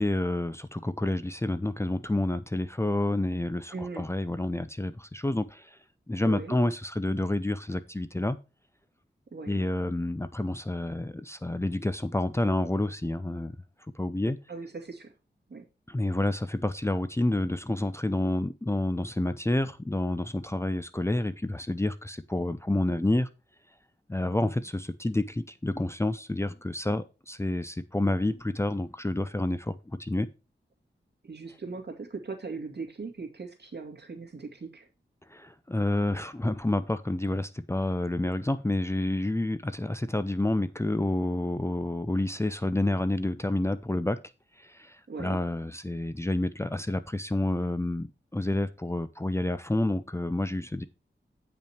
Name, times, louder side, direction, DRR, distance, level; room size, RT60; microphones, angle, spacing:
voice 1, 0.0-5.8 6.1-8.4 9.5-13.5 13.9-14.4 15.9-23.3 24.1-30.3 35.3-44.2 44.6-50.8, left 1 dB, 15° left, 0.6 m, -29 dB
voice 2, 3.7-4.0 6.2-6.6 9.3-9.6 14.5-15.1 15.5-15.7 31.2-34.9 45.1-45.4, right 4 dB, 60° right, 2.3 m, -39 dB
8.9 x 5.6 x 4.5 m
wide cardioid pair, 85°, 19 cm